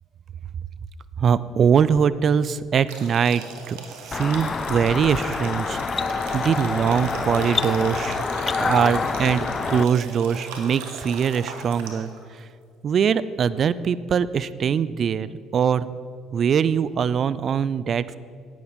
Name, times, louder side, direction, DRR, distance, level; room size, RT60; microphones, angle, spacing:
voice 1, 1.2-3.8 4.0-5.8 6.3-8.2 8.6-12.4 12.8-15.9 16.3-18.1, right 7 dB, 50° right, 17 dB, 0.4 m, -22 dB
sound 1, 2.9-12.2, right 4 dB, 80° right, 1.4 m, -37 dB
sound 2, 4.1-9.8, left 5 dB, 35° left, 0.4 m, -27 dB
11.0 x 9.3 x 5.2 m, 2.3 s
hypercardioid pair, 65°, 0 cm